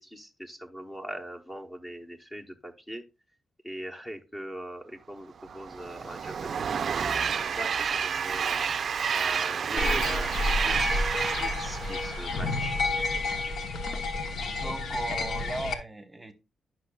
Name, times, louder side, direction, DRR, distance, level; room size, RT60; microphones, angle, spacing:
voice 1, 0.0-3.0 3.6-10.3 10.6-12.8 14.4-14.5, equal, 15° left, 3 dB, 0.9 m, -41 dB
Train, 5.4-12.9, right 7 dB, 55° right, 0.4 m, -30 dB
sound 1, 9.8-15.7, left 3 dB, 75° left, 0.9 m, -30 dB
voice 2, 14.5-16.3, right 2 dB, 15° right, 8 dB, 1.0 m, -36 dB
10.0 x 5.9 x 2.3 m, 0.27 s
cardioid pair, 120°, 0 cm